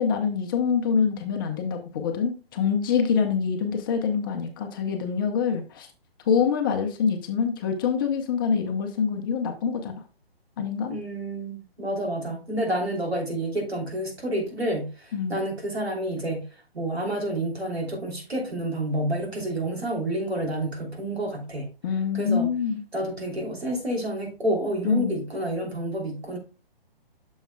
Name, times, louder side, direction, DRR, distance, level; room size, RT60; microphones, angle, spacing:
voice 1, 0.0-5.9 6.3-10.0 10.6-10.9 15.1-15.4 21.8-22.8 24.8-25.2, left 6 dB, 20° left, 0.7 m, -25 dB
voice 2, 10.9-16.5 16.7-21.7 22.1-22.5 22.9-26.4, right 1 dB, 85° right, 3.2 m, -29 dB
8.8 x 6.4 x 2.3 m
figure-of-eight pair, 140°, 30 cm